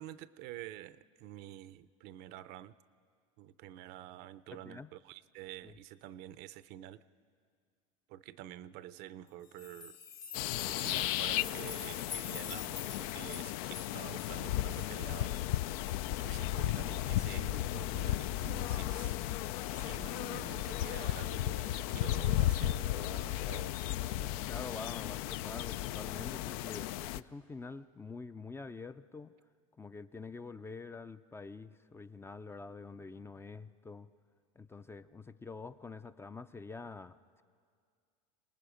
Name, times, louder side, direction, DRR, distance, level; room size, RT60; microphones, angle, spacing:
voice 1, 0.0-2.7 3.4-7.0 8.1-10.0 10.6-19.2 19.7-23.8, right 13 dB, 60° right, 16 dB, 0.6 m, -49 dB
voice 2, 4.5-4.9 5.6-5.7 24.2-29.3 29.8-34.1 34.6-37.4, left 4 dB, 15° left, 11 dB, 0.4 m, -46 dB
sound 1, 9.4-16.3 16.7-16.8 17.1-17.2 17.8-17.9, left 8 dB, 45° left, 1.3 m, -47 dB
sound 2, 10.3-27.2, left 14 dB, 70° left, 0.4 m, -35 dB
27.5 x 18.5 x 5.1 m, 2.1 s
supercardioid pair, 105°, 19 cm